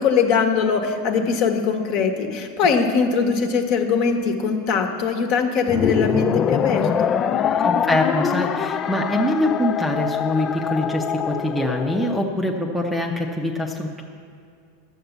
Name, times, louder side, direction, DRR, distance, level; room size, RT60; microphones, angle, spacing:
voice 1, 0.0-7.1, left 5 dB, 45° left, 5 dB, 1.3 m, -21 dB
sound 1, 5.7-12.2, left 8 dB, 25° left, 0.3 m, -24 dB
voice 2, 7.6-14.0, left 1 dB, ahead, -2 dB, 0.7 m, -24 dB
12.0 x 7.1 x 8.0 m, 2.4 s
supercardioid pair, 155°, 0 cm